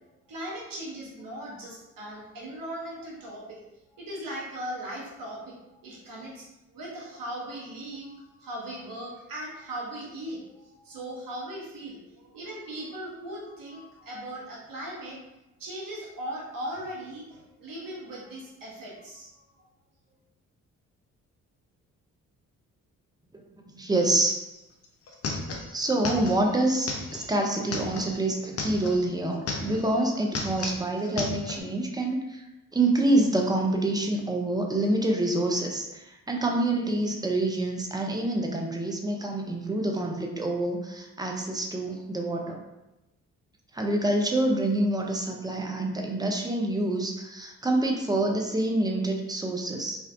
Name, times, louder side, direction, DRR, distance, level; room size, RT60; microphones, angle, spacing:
voice 1, 0.3-3.6 3.9-15.2 15.6-19.3, right 1 dB, 60° right, -4 dB, 1.0 m, -38 dB
voice 2, 23.3-24.4 25.2-32.4 32.7-42.6 43.7-50.0, right 2 dB, 10° right, 1 dB, 0.4 m, -27 dB
sound 1, 24.5-24.6 24.8-29.0 29.3-30.0 30.2-31.6, left 3 dB, 40° left, 0.5 m, -34 dB
2.4 x 2.1 x 2.5 m, 0.96 s
hypercardioid pair, 45°, 39 cm